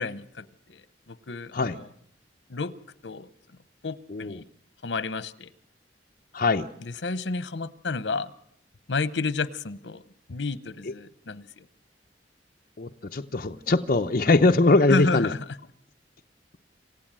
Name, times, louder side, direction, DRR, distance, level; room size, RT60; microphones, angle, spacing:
voice 1, 0.0-1.9 2.5-2.7 3.0-3.3 3.8-4.4 4.8-5.5 6.8-8.3 8.9-10.0 10.3-11.7 14.9-15.4, left 3 dB, 85° left, 16 dB, 0.9 m, -31 dB
voice 2, 4.1-4.4 6.3-6.7 12.8-15.3, left 3 dB, 50° left, 4 dB, 0.8 m, -22 dB
27.5 x 15.5 x 7.6 m, 0.71 s
head